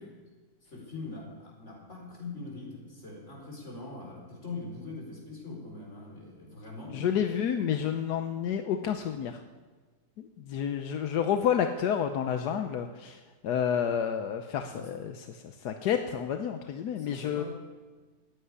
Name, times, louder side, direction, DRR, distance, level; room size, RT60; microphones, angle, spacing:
voice 1, 0.6-7.2 14.6-14.9 17.0-17.5, left 3 dB, 45° left, -1 dB, 4.7 m, -42 dB
voice 2, 6.9-9.4 10.2-17.4, left 8 dB, 85° left, 7 dB, 1.4 m, -30 dB
15.0 x 9.1 x 9.7 m, 1.3 s
omnidirectional pair, 1.7 m